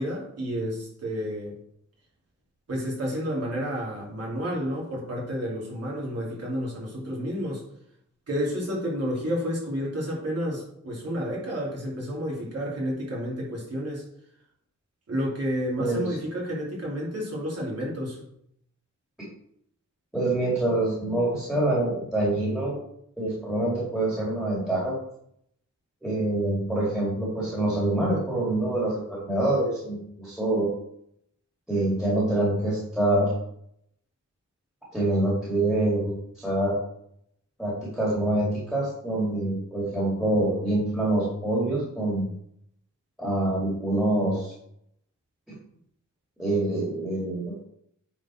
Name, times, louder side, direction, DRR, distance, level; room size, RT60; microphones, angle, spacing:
voice 1, 0.0-1.6 2.7-7.6 8.3-14.0 15.1-18.2, equal, 50° right, -4 dB, 2.9 m, -30 dB
voice 2, 20.1-22.7 23.2-25.0 26.0-30.7 31.7-33.3 34.9-36.8 37.6-42.3 43.2-44.5 45.5-45.6 46.4-47.4, right 1 dB, ahead, -7 dB, 2.3 m, -25 dB
9.3 x 4.3 x 4.4 m, 0.71 s
wide cardioid pair, 170°, 31 cm